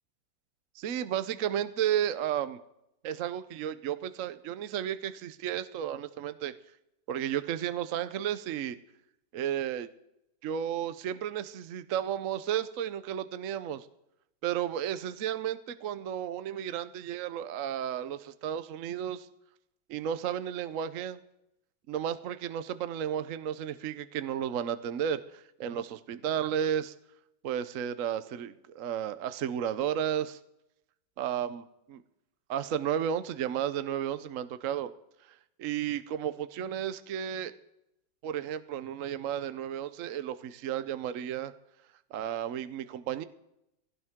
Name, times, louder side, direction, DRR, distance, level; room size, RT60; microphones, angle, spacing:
voice 1, 0.8-2.6 3.0-6.5 7.1-8.8 9.3-9.9 10.4-13.9 14.4-19.3 19.9-21.2 21.9-26.9 27.4-30.4 31.2-31.6 31.9-32.0 32.5-34.9 35.6-37.5 38.2-41.5 42.1-43.2, right 9 dB, 65° right, 12 dB, 0.8 m, -33 dB
20.0 x 16.5 x 3.6 m, 0.82 s
omnidirectional pair, 2.2 m